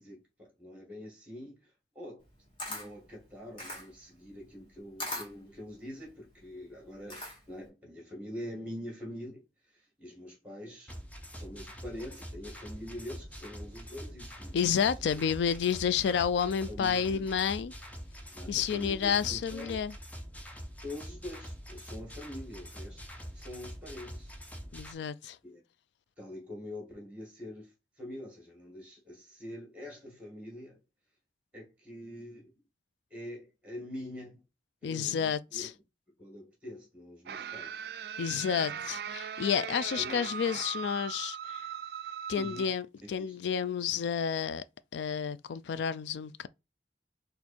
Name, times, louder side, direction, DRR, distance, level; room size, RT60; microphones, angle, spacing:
voice 1, 0.0-1.7 1.9-2.2 2.7-7.2 7.5-9.4 10.0-10.9 11.3-15.2 16.7-17.3 18.3-19.8 20.8-23.0 23.3-24.3 25.4-25.6 26.2-27.7 28.0-30.8 31.5-32.5 33.1-34.4 34.8-35.6 36.2-37.8 40.0-40.1 42.3-42.6 43.2-43.4, left 1 dB, 5° right, 2.0 m, -44 dB
Camera, 2.2-7.7, left 1 dB, 30° left, 2.0 m, -42 dB
sound 1, 10.9-24.9, equal, 10° left, 0.6 m, -45 dB
voice 2, 14.5-17.7 18.5-19.9 24.7-25.4 34.8-35.7 38.2-41.7 42.3-44.6 44.9-46.5, left 7 dB, 85° left, 0.3 m, -30 dB
sound 2, 37.3-42.7, right 8 dB, 60° right, 0.3 m, -39 dB
4.4 x 2.6 x 4.3 m
head